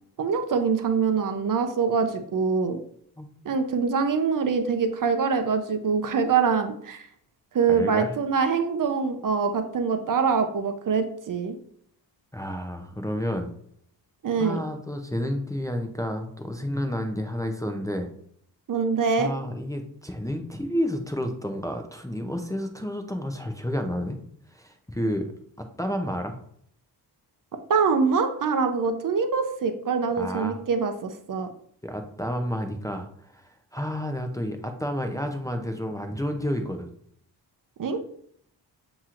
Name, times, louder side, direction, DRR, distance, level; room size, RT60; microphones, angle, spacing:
voice 1, 0.2-2.8 3.4-7.1 7.5-11.6 14.2-14.6 18.7-19.3 27.7-31.5 37.8-38.0, right 5 dB, 50° right, 7 dB, 0.7 m, -24 dB
voice 2, 7.7-8.1 12.3-13.5 14.4-18.1 19.2-24.2 24.5-25.2 25.6-26.3 30.2-30.6 31.8-36.9, equal, 10° left, 3 dB, 0.5 m, -30 dB
7.1 x 3.0 x 2.5 m, 0.66 s
cardioid pair, 75°, 42 cm